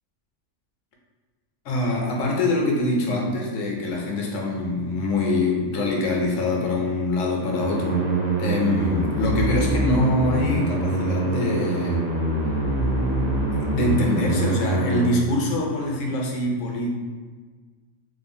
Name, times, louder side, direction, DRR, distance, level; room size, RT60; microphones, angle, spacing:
voice 1, 1.6-8.0 8.4-12.0 13.5-16.9, left 2 dB, 80° left, -1 dB, 0.9 m, -24 dB
sound 1, 7.4-15.1, right 2 dB, 85° right, 0.3 m, -24 dB
2.9 x 2.0 x 2.6 m, 1.4 s
omnidirectional pair, 1.3 m